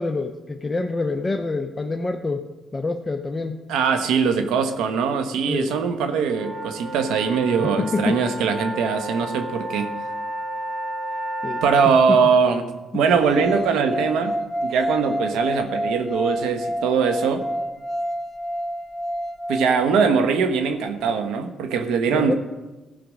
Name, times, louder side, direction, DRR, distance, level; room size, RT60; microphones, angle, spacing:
voice 1, 0.0-2.5 2.7-3.6 5.5-5.8 7.8-8.2 11.4-11.6 12.1-12.2 12.9-13.0 22.1-22.3, left 3 dB, 20° left, 4 dB, 0.7 m, -26 dB
voice 2, 3.7-9.9 11.6-14.3 14.6-17.4 19.5-22.3, right 5 dB, 90° right, 8 dB, 1.1 m, -21 dB
sound 1, 6.3-11.9, right 1 dB, 60° right, 3.7 m, -32 dB
sound 2, 13.2-20.3, equal, ahead, 1.5 m, -29 dB
15.5 x 5.2 x 6.2 m, 1.2 s
cardioid pair, 90°, 0 cm